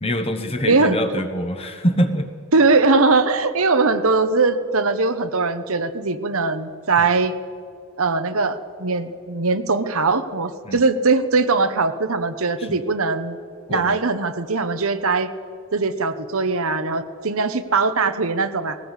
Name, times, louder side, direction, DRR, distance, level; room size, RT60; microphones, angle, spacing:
voice 1, 0.0-2.3 10.6-10.8 12.6-12.8 13.7-14.0, equal, 25° left, 7 dB, 1.1 m, -24 dB
voice 2, 0.6-1.2 2.5-7.3 8.0-13.4 13.7-15.3 15.7-18.8, right 3 dB, 70° right, 9 dB, 1.1 m, -20 dB
19.0 x 17.5 x 8.3 m, 2.1 s
head